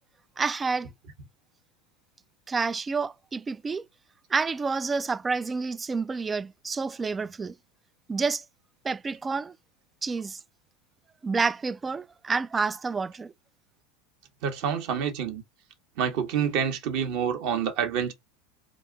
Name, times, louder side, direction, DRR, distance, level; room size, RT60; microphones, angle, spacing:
voice 1, 0.4-0.9 2.5-3.9 4.3-7.5 8.1-8.4 8.8-9.5 10.0-10.4 11.2-13.3, right 4 dB, 20° right, 0.3 m, -29 dB
voice 2, 14.4-15.4 16.0-18.1, right 7 dB, 60° right, 1.3 m, -27 dB
4.3 x 2.6 x 3.8 m
hypercardioid pair, 95°, 0 cm